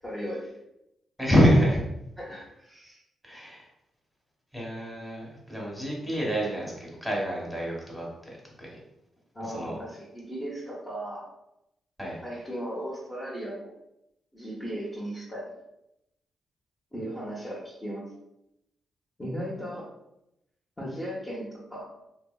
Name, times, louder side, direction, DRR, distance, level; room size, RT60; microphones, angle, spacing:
voice 1, 0.0-0.4 1.5-1.7 2.2-3.0 9.3-11.2 12.2-13.7 14.3-15.5 16.9-18.0 19.2-19.8 20.8-21.8, equal, 20° left, -6 dB, 0.9 m, -36 dB
voice 2, 1.2-1.8 3.2-3.7 4.5-8.3 8.6-8.8 9.5-9.8 12.0-12.2, equal, 5° left, -3 dB, 1.2 m, -26 dB
2.8 x 2.6 x 2.2 m, 0.84 s
cardioid pair, 65°, 0 cm